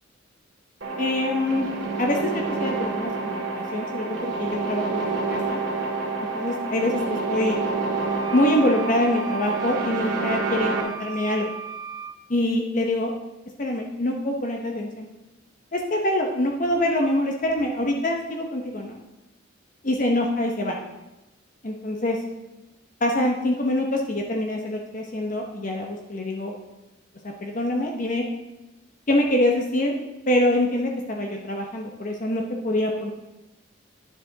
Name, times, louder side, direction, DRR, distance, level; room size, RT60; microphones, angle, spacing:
sound 1, 0.8-10.8, right 3 dB, 70° right, 2.0 m, -28 dB
voice 1, 1.0-1.7 2.0-2.3 2.6-5.6 6.3-7.6 8.3-11.5 12.3-13.1 13.6-15.1 15.7-19.0 19.8-20.8 21.6-22.2 23.0-26.5 27.2-28.2 29.1-30.0 30.3-33.1, left 1 dB, 40° left, 1 dB, 0.8 m, -25 dB
sound 2, 8.0-12.2, right 5 dB, 20° right, 0.4 m, -37 dB
10.5 x 7.3 x 3.9 m, 1.1 s
head